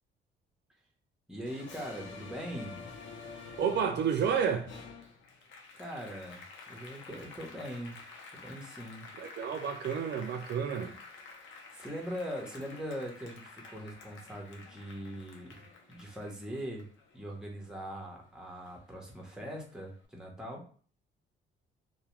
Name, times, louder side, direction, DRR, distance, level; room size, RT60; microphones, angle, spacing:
voice 1, 1.3-2.8 5.7-6.4 6.7-8.0 8.3-9.1 11.7-15.5 15.9-16.8 17.1-20.6, equal, 5° right, 0.9 m, -41 dB
Applause, 1.5-18.3 18.7-19.8, left 4 dB, 75° left, 0.6 m, -50 dB
voice 2, 3.6-4.7 9.2-10.9, right 7 dB, 60° right, 0.4 m, -30 dB
2.2 x 2.2 x 3.0 m
cardioid pair, 90°, 20 cm